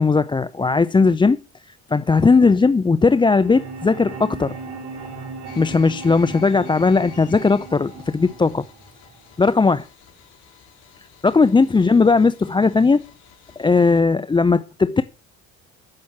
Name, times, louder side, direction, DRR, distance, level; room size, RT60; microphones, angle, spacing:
voice 1, 0.0-1.4 1.9-4.5 5.6-8.6 9.4-9.8 11.2-13.0 13.6-15.0, left 4 dB, 15° left, 0.6 m, -17 dB
sound 1, 3.4-9.4, right 3 dB, 60° right, 7.1 m, -37 dB
sound 2, 5.5-14.0, left 10 dB, 70° left, 3.8 m, -49 dB
14.0 x 6.2 x 7.2 m
hypercardioid pair, 70°, 31 cm